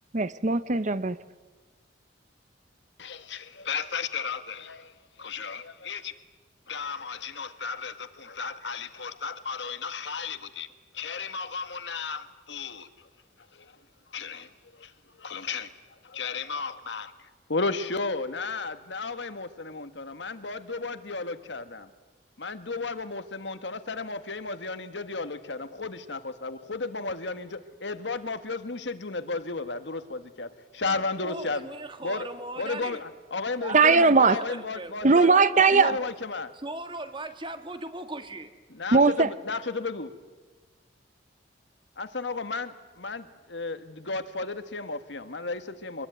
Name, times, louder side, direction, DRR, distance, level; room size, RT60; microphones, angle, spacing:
voice 1, 0.1-1.2 33.7-34.4 35.0-35.9 38.9-39.3, right 4 dB, 40° right, 15 dB, 0.7 m, -19 dB
voice 2, 3.0-4.9 5.2-6.1 6.7-10.7 10.9-12.9 13.5-13.7 14.1-14.9 15.2-15.7 16.0-17.1 17.5-21.9 22.4-31.6 32.0-32.3 32.6-35.3 35.7-36.5 38.7-40.1 42.0-46.1, left 4 dB, 70° left, 10 dB, 1.7 m, -34 dB
voice 3, 31.2-33.0 33.6-35.7 36.0-36.1 36.5-38.5, right 2 dB, 25° right, 8 dB, 1.9 m, -38 dB
25.0 x 21.5 x 9.4 m, 1.3 s
head